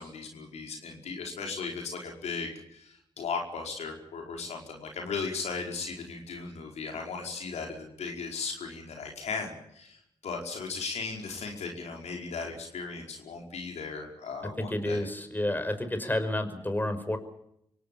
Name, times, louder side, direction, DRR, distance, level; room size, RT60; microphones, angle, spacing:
voice 1, 0.0-15.1, left 4 dB, 80° left, 1 dB, 5.0 m, -37 dB
voice 2, 14.6-17.2, left 1 dB, 15° left, 9 dB, 5.5 m, -30 dB
25.0 x 17.5 x 8.7 m, 0.74 s
supercardioid pair, 40°, 11 cm